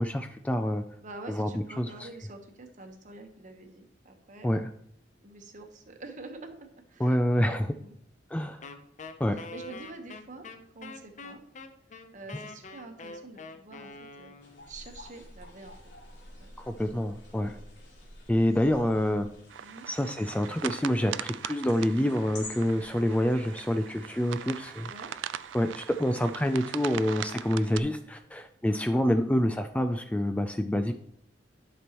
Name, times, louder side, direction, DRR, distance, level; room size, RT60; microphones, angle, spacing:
voice 1, 0.0-0.8 1.3-1.5 1.8-1.9 4.4-4.6 7.0-7.7 8.3-8.6 9.2-9.4 16.6-17.6 18.3-19.3 19.9-24.9 25.5-30.9, equal, 5° left, 8 dB, 0.3 m, -27 dB
voice 2, 1.0-4.5 5.2-6.6 6.9-7.9 9.2-10.5 10.7-11.4 12.1-14.3 14.7-15.8 16.4-16.5 17.3-17.6 19.6-19.9 24.8-25.1, right 2 dB, 45° right, 5 dB, 1.1 m, -47 dB
Wind instrument woodwind instrument, 8.6-14.7, left 3 dB, 40° left, 0.7 m, -44 dB
sound 1, 14.4-27.5, left 2 dB, 80° left, 2.3 m, -51 dB
sound 2, 19.5-27.8, right 10 dB, 85° right, 0.3 m, -40 dB
11.0 x 6.1 x 3.0 m, 0.71 s
head